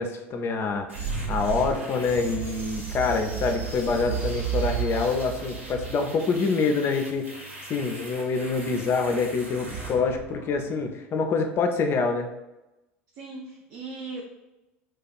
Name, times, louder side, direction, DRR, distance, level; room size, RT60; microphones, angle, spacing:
voice 1, 0.0-12.3, left 4 dB, 35° left, 5 dB, 0.5 m, -26 dB
sound 1, 0.9-10.9, right 5 dB, 75° right, 1.3 m, -34 dB
voice 2, 3.1-3.5 13.2-14.2, right 4 dB, 50° right, -2 dB, 0.5 m, -39 dB
2.5 x 2.3 x 4.0 m, 0.98 s
figure-of-eight pair, 70°, 7 cm